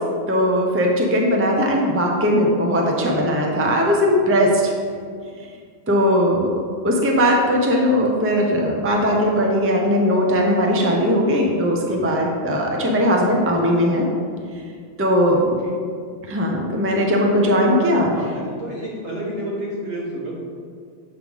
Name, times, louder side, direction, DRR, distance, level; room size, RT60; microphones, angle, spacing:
voice 1, 0.3-4.7 5.9-6.5 6.8-14.1 15.0-15.4 16.3-18.1, equal, 15° right, 0 dB, 0.5 m, -19 dB
voice 2, 18.0-20.4, right 1 dB, 70° right, -5 dB, 1.9 m, -30 dB
7.8 x 3.2 x 5.3 m, 2.1 s
omnidirectional pair, 1.2 m